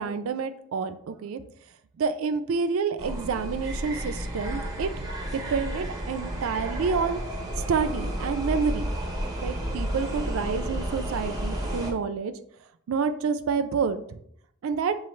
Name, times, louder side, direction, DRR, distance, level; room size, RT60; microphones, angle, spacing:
voice 1, 0.0-1.4 2.0-7.2 7.7-8.9 9.4-12.3 12.9-14.2 14.6-15.0, right 5 dB, 85° right, 11 dB, 0.4 m, -28 dB
sound 1, 3.0-11.9, right 1 dB, 15° right, 0.7 m, -32 dB
7.0 x 2.4 x 3.1 m, 0.69 s
head